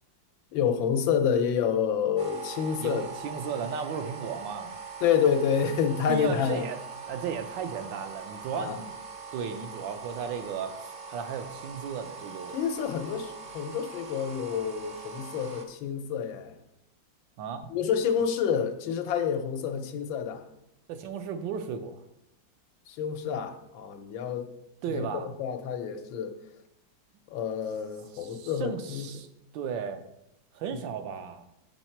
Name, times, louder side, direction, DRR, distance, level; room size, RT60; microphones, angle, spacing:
voice 1, 0.5-3.0 5.0-6.7 8.5-8.8 12.5-16.5 17.7-20.4 22.9-24.5 24.9-26.3 27.3-29.1, left 7 dB, 80° left, 6 dB, 1.5 m, -28 dB
sound 1, 2.2-15.6, right 5 dB, 45° right, 0.7 m, -42 dB
voice 2, 2.8-4.7 6.1-6.8 7.1-8.9 9.3-12.6 17.4-17.6 20.9-22.0 24.8-25.3 28.1-29.3 29.5-30.0 30.5-31.4, right 6 dB, 75° right, 8 dB, 1.4 m, -35 dB
7.2 x 6.0 x 4.4 m, 0.85 s
omnidirectional pair, 2.1 m